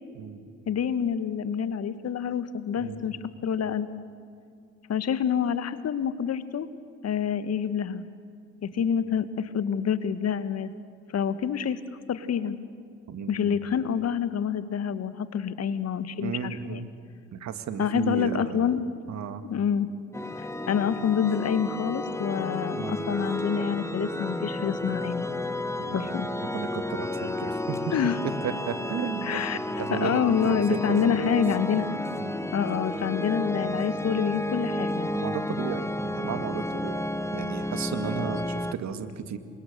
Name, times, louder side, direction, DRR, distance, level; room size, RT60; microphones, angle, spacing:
voice 1, 0.1-0.5 2.8-3.2 13.1-13.6 16.2-16.9 17.3-18.7 19.1-19.4 22.7-23.1 25.8-26.1 26.4-27.9 28.4-29.4 29.8-31.4 32.2-32.3 35.1-37.0 37.3-39.4, right 7 dB, 50° right, 10 dB, 2.1 m, -34 dB
voice 2, 0.7-3.2 3.4-3.9 4.9-6.7 7.0-8.0 8.6-10.7 11.1-11.8 12.1-12.5 13.3-16.8 17.8-18.8 19.4-19.9 20.4-25.3 25.9-26.3 27.9-28.2 29.2-29.6 29.9-31.9 32.5-35.1, left 8 dB, 45° left, 13 dB, 1.5 m, -27 dB
sound 1, 20.1-38.7, left 1 dB, 10° left, 1.3 m, -32 dB
28.5 x 25.5 x 6.8 m, 2.3 s
hypercardioid pair, 50°, 35 cm